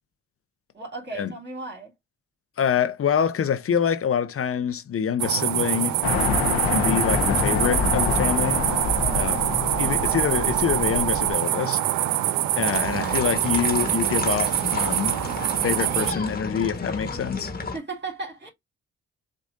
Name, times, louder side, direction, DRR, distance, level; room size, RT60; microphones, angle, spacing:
voice 1, 0.7-1.9 9.0-9.2 9.9-10.0 17.7-18.5, right 3 dB, 35° right, 3.1 m, -35 dB
voice 2, 2.6-6.0 6.7-8.6 9.1-9.5 9.8-11.8 12.6-15.2 15.6-17.5, left 8 dB, 50° left, 0.9 m, -26 dB
sound 1, 5.2-16.1, right 13 dB, 70° right, 0.6 m, -25 dB
sound 2, 6.0-11.3, left 5 dB, 90° left, 1.0 m, -26 dB
sound 3, 12.7-17.8, left 3 dB, 30° left, 1.5 m, -32 dB
7.3 x 2.6 x 2.6 m
hypercardioid pair, 45°, 30 cm